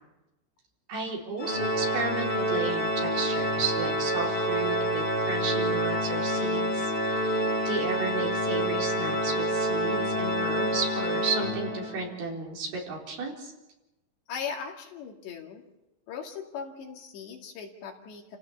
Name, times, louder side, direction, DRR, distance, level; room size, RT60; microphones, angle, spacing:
voice 1, 0.9-13.5, right 4 dB, 60° right, -1 dB, 5.7 m, -33 dB
Organ, 1.4-12.1, equal, 15° left, 2.5 m, -28 dB
voice 2, 14.3-15.6 16.1-18.4, left 6 dB, 75° left, 2 dB, 4.5 m, -38 dB
29.5 x 17.0 x 7.1 m, 0.97 s
omnidirectional pair, 5.1 m